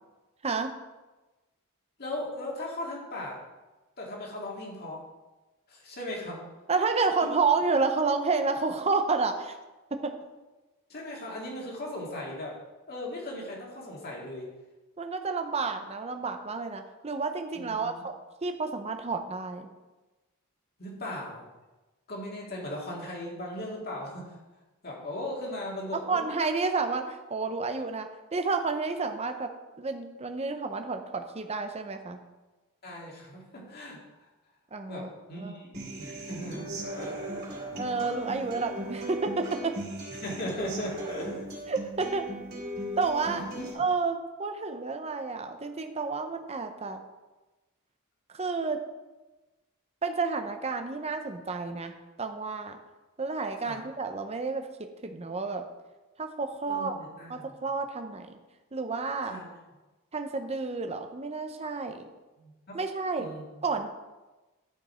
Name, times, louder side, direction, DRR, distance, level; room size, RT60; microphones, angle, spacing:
voice 1, 2.0-3.4 4.0-5.0 5.7-6.4 10.9-12.6 12.9-14.5 17.5-18.1 20.8-21.5 22.1-24.3 24.8-26.2 32.8-34.3 34.9-36.7 36.9-37.1 40.1-41.6 43.4-43.7 53.6-53.8 56.7-57.5 59.3-59.5 62.4-62.8 63.2-63.6, left 1 dB, 45° left, -2 dB, 2.2 m, -38 dB
voice 2, 6.7-9.6 10.0-10.1 15.0-18.1 18.4-19.7 26.1-29.5 29.8-32.2 34.7-35.1 35.4-35.6 37.7-39.8 41.7-42.3 43.0-43.4 43.7-47.0 48.3-48.8 50.0-52.8 53.2-55.6 56.2-57.0 57.3-58.4 58.7-59.4 60.1-62.1 62.7-63.3 63.6-63.9, right 4 dB, 30° right, 6 dB, 0.7 m, -30 dB
Human voice / Acoustic guitar, 35.7-43.7, right 1 dB, 50° right, 3.2 m, -38 dB
11.5 x 5.2 x 4.4 m, 1.1 s
head